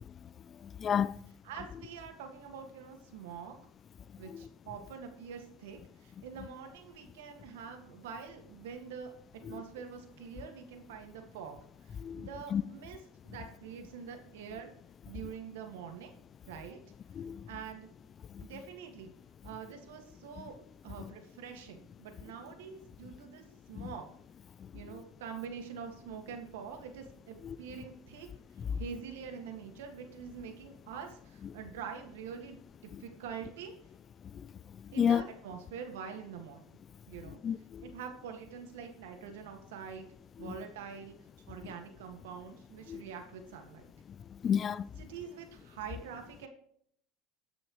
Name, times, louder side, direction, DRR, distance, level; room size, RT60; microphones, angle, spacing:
voice 1, 0.8-1.1 12.0-12.6 17.2-17.4 35.0-35.2 37.4-37.8 42.9-43.0 44.4-44.9, left 8 dB, 30° left, 0.4 m, -29 dB
voice 2, 1.4-3.6 4.2-9.1 9.5-14.7 15.1-16.1 16.5-16.8 17.5-17.9 18.4-19.1 19.4-20.6 20.8-24.1 24.7-28.3 28.8-33.7 34.9-36.6 37.1-37.4 37.8-40.1 40.4-41.2 41.5-43.8 45.0-46.5, right 7 dB, 90° right, 1.9 m, -45 dB
18.5 x 6.3 x 3.1 m
supercardioid pair, 120°, 0 cm